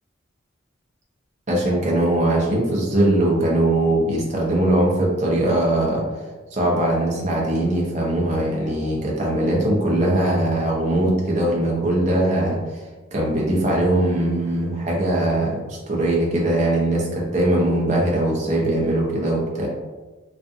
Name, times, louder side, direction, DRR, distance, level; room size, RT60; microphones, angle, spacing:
voice 1, 1.5-6.0 6.5-12.6 13.1-19.7, right 1 dB, 35° right, -3 dB, 0.5 m, -21 dB
2.4 x 2.4 x 2.5 m, 1.2 s
head